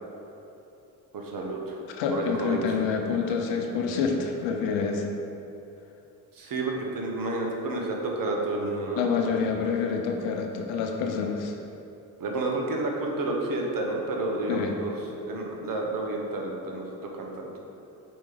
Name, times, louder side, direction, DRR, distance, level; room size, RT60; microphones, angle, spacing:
voice 1, 1.1-1.8 2.1-2.6 6.3-9.4 12.2-14.9 15.3-17.5, right 2 dB, 45° right, 0 dB, 1.2 m, -30 dB
voice 2, 1.9-5.1 9.0-11.5 14.5-14.7, left 5 dB, 75° left, 3 dB, 0.8 m, -27 dB
5.1 x 4.8 x 3.9 m, 2.9 s
hypercardioid pair, 55°, 45 cm